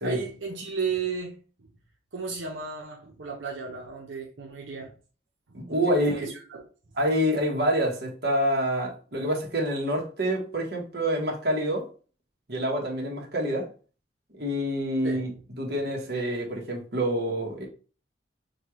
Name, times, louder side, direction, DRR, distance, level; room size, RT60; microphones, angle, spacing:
voice 1, 0.0-1.4 2.1-4.9 5.5-6.7 15.0-15.4 15.8-15.9, right 5 dB, 85° right, -1 dB, 0.9 m, -34 dB
voice 2, 5.5-6.3 7.0-11.8 12.5-13.7 14.3-15.3 15.6-17.7, equal, 55° right, -1 dB, 1.3 m, -27 dB
6.3 x 2.4 x 3.0 m, 0.37 s
head